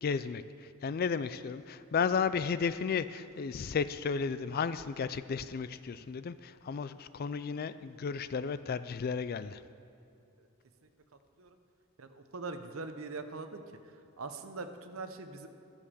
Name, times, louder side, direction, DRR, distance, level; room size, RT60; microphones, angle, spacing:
voice 1, 0.0-9.6, left 6 dB, 45° left, 14 dB, 0.3 m, -33 dB
voice 2, 12.0-13.6 14.2-15.5, right 3 dB, 65° right, 8 dB, 0.8 m, -42 dB
11.5 x 7.1 x 6.8 m, 2.7 s
head